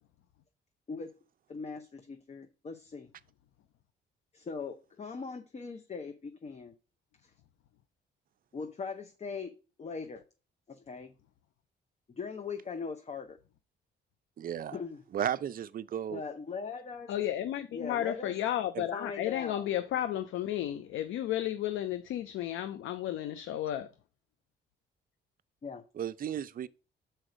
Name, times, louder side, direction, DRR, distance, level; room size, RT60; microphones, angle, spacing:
voice 1, 1.5-3.1 4.3-6.7 7.2-7.3 8.5-9.5 9.8-10.2 10.7-11.1 12.2-13.4 14.7-15.0 16.1-17.1 17.7-18.3 18.9-19.7 25.6-25.8, left 5 dB, 35° left, 0.8 m, -40 dB
voice 2, 14.4-14.8 15.1-16.2 18.7-18.9 26.0-26.7, right 9 dB, 45° right, 0.5 m, -34 dB
voice 3, 17.1-23.9, left 12 dB, 85° left, 0.6 m, -33 dB
6.4 x 4.5 x 4.9 m
cardioid pair, 90°, 20 cm